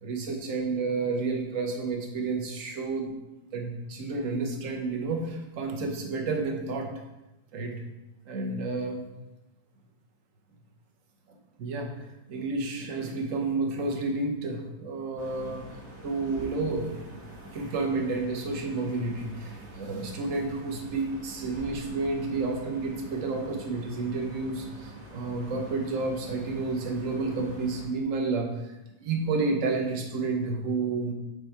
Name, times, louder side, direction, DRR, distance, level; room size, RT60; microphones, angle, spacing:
voice 1, 0.0-3.1 3.5-6.9 7.5-7.8 8.3-9.1 11.3-11.9 12.3-15.6 16.0-17.0 17.5-31.1, right 3 dB, 55° right, 2 dB, 1.0 m, -30 dB
sound 1, 15.2-27.9, right 1 dB, 40° right, 1.5 m, -45 dB
7.1 x 3.4 x 4.5 m, 0.97 s
omnidirectional pair, 2.1 m